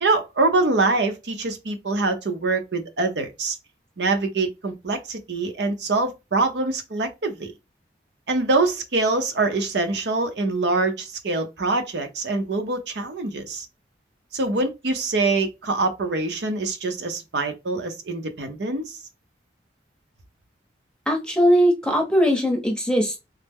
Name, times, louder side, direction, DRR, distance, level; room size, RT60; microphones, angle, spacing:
voice 1, 0.0-3.6 4.0-7.5 8.3-13.7 14.3-19.0, right 3 dB, 75° right, 0.7 m, -24 dB
voice 2, 21.1-23.2, equal, 5° left, 0.7 m, -20 dB
3.1 x 2.0 x 3.4 m
head